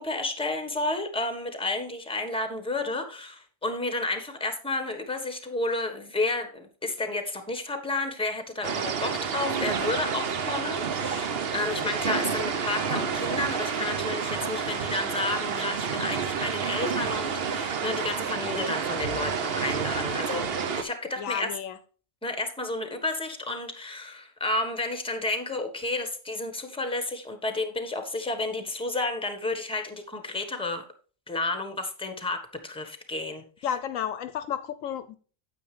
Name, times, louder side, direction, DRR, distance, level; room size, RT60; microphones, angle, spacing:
voice 1, 0.0-20.5 20.8-21.5 22.2-30.8 31.3-33.4, left 2 dB, 5° left, 1.3 m, -31 dB
sound 1, 8.6-20.8, right 6 dB, 50° right, 1.0 m, -29 dB
voice 2, 21.2-21.8 33.6-35.2, left 9 dB, 75° left, 1.0 m, -32 dB
9.4 x 8.3 x 3.3 m
omnidirectional pair, 1.4 m